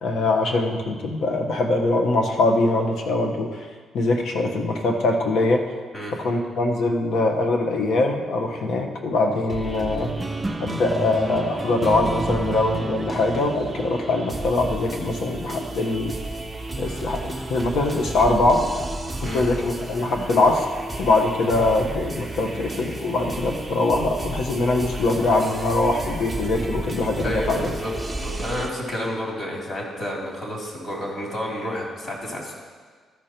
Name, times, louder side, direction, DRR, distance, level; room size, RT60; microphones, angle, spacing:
voice 1, 0.0-3.7 3.9-5.6 6.1-10.1 10.6-16.1 16.8-18.7 19.2-20.7 21.0-27.7, left 2 dB, 70° left, 2 dB, 1.2 m, -22 dB
sound 1, 9.5-28.7, right 2 dB, 5° right, 1.0 m, -33 dB
sound 2, 10.0-14.9, right 2 dB, 20° right, 0.5 m, -32 dB
voice 2, 27.2-32.5, equal, 45° left, -2 dB, 3.0 m, -30 dB
13.5 x 5.3 x 4.4 m, 1.5 s
cardioid pair, 90°, 0 cm